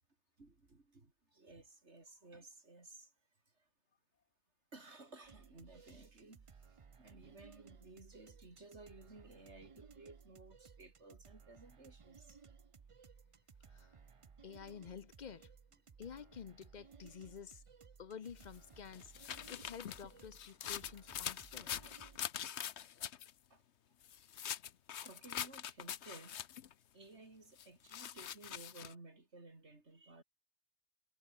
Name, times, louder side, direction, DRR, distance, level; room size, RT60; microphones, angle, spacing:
voice 1, 0.4-3.1 3.6-3.7 4.7-12.4 23.5-23.6 25.0-26.4 26.9-30.2, right 2 dB, 90° right, 4.0 m, -57 dB
sound 1, 5.2-22.2, right 5 dB, 35° right, 0.7 m, -60 dB
voice 2, 14.4-15.5 16.0-17.6 18.0-19.1 19.5-21.7, left 7 dB, 45° left, 0.7 m, -50 dB
sound 2, 18.4-23.3 24.0-26.7 27.6-28.9, left 10 dB, 80° left, 1.1 m, -44 dB
omnidirectional pair, 1.1 m